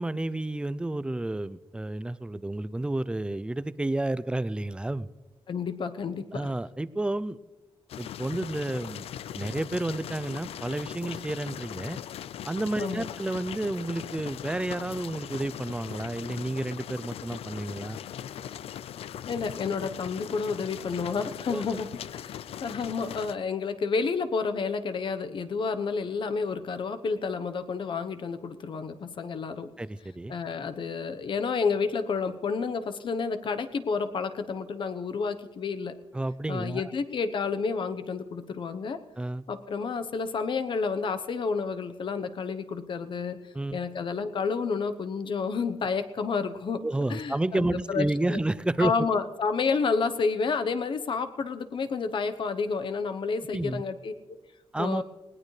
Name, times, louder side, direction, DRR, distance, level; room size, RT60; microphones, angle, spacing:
voice 1, 0.0-5.1 6.3-7.4 8.0-9.1 9.3-12.0 12.4-18.0 21.5-21.6 29.8-30.3 36.1-36.9 39.2-39.4 43.5-43.8 46.8-48.9 49.7-49.8 53.5-53.8 54.7-55.0, right 2 dB, 10° right, 17 dB, 0.4 m, -30 dB
voice 2, 5.5-6.5 12.8-13.1 19.3-29.7 30.3-36.0 36.5-39.0 39.5-43.4 43.7-46.8 47.1-48.0 48.3-48.4 48.8-54.4 54.8-55.0, left 5 dB, 55° left, 10 dB, 1.0 m, -30 dB
sound 1, 7.9-23.4, left 10 dB, 85° left, 0.4 m, -40 dB
19.5 x 18.0 x 3.3 m, 1.2 s
wide cardioid pair, 130°, 10 cm